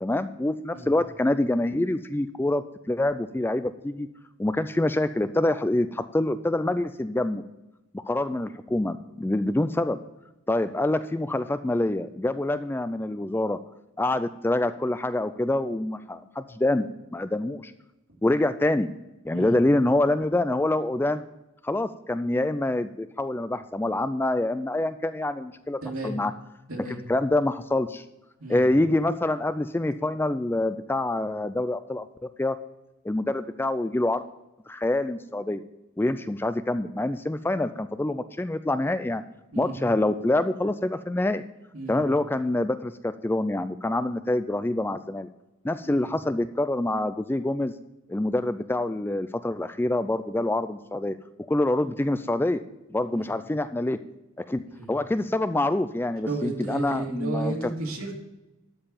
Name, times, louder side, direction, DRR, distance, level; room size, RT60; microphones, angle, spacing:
voice 1, 0.0-4.1 4.4-7.4 7.9-10.0 10.5-13.6 14.0-17.7 18.2-18.9 19.3-21.2 21.6-25.8 26.0-26.3 27.1-28.0 28.5-32.6 33.0-34.2 34.7-35.6 36.0-39.2 39.6-41.4 41.9-45.3 45.6-47.7 48.1-51.2 51.5-52.6 52.9-54.0 54.4-54.6 54.9-57.5, left 1 dB, 10° left, 11 dB, 0.3 m, -26 dB
voice 2, 25.8-26.1 26.7-27.0 28.4-28.7 39.5-39.8 41.7-42.0 45.8-46.1 53.1-53.3 54.7-54.9 56.2-58.1, right 2 dB, 75° right, -1 dB, 2.6 m, -33 dB
12.5 x 4.6 x 8.6 m, 0.96 s
head